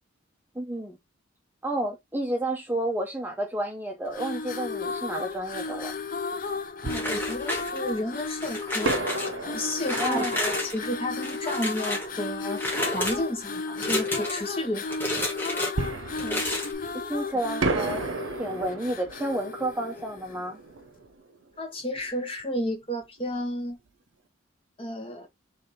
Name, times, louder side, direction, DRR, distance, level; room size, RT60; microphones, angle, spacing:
voice 1, 0.5-1.0 1.6-5.9 9.9-10.4 16.2-16.4 17.1-18.0 18.4-20.6, right 1 dB, 10° right, 0.6 m, -31 dB
sound 1, 4.1-20.5, left 4 dB, 45° left, 0.6 m, -34 dB
voice 2, 6.8-9.0 9.4-12.6 12.9-14.8 21.6-23.8 24.8-25.3, left 1 dB, 30° left, 1.5 m, -32 dB
Fireworks, 6.8-8.0 8.8-12.3 15.8-17.2 17.6-22.2 22.4-22.5 23.0-23.2, right 3 dB, 80° right, 0.7 m, -34 dB
sound 2, 6.9-8.0 8.4-9.3 9.8-10.8 11.2-12.1 12.5-13.2 13.7-14.5 14.9-15.7 16.1-16.7, left 1 dB, 10° left, 1.4 m, -31 dB
3.4 x 3.2 x 4.1 m
head